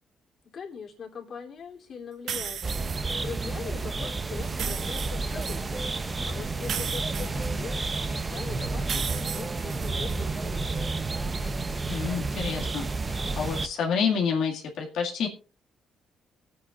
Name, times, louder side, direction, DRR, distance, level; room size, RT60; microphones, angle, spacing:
voice 1, 0.5-2.6 3.2-6.0 6.2-11.6, left 6 dB, 55° left, 0 dB, 3.1 m, -42 dB
sound 1, 2.3-3.2 4.4-5.6 6.6-8.0 8.8-10.2, right 8 dB, 65° right, 1.1 m, -35 dB
sound 2, 2.6-13.7, right 3 dB, 30° right, 0.8 m, -30 dB
voice 2, 11.9-15.3, left 6 dB, 80° left, -1 dB, 2.1 m, -29 dB
25.0 x 8.7 x 2.5 m, 0.35 s
cardioid pair, 90°, 0 cm